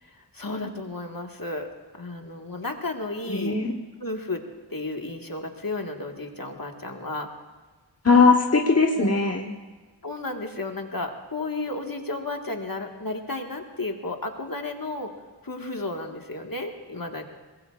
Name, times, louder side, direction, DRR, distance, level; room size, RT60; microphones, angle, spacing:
voice 1, 0.0-3.6 4.0-4.4 4.7-7.3 8.9-9.2 10.0-15.1 15.4-17.2, left 2 dB, 55° left, 3 dB, 1.7 m, -33 dB
voice 2, 3.3-3.7 8.0-9.5, left 4 dB, 35° left, 1 dB, 1.1 m, -19 dB
23.0 x 21.0 x 2.5 m, 1.3 s
wide cardioid pair, 45°, 42 cm